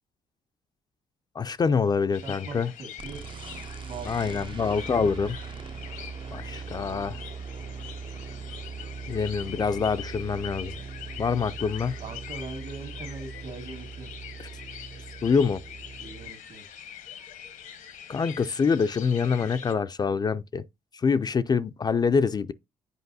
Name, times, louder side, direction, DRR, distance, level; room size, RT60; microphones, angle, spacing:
voice 1, 1.4-2.7 4.1-5.4 6.3-7.2 9.1-10.7 11.2-12.0 14.4-14.5 15.2-15.6 18.1-20.6 20.9-22.5, left 5 dB, 30° left, 0.3 m, -25 dB
sound 1, 2.1-19.7, left 9 dB, 75° left, 0.9 m, -44 dB
voice 2, 2.2-3.2 3.9-4.4 12.0-14.1 16.0-16.6, right 4 dB, 65° right, 1.8 m, -41 dB
sound 2, 3.0-16.3, right 5 dB, 35° right, 0.4 m, -40 dB
8.1 x 4.6 x 2.7 m
cardioid pair, 75°, 14 cm